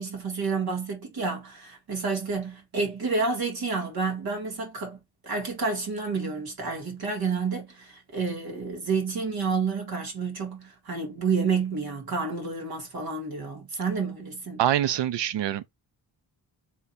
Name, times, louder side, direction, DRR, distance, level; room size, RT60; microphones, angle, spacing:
voice 1, 0.0-5.0 5.2-14.6, right 4 dB, 60° right, 2.0 m, -29 dB
voice 2, 14.6-15.7, right 11 dB, 80° right, 0.6 m, -25 dB
3.6 x 2.7 x 4.1 m
wide cardioid pair, 140°, 42 cm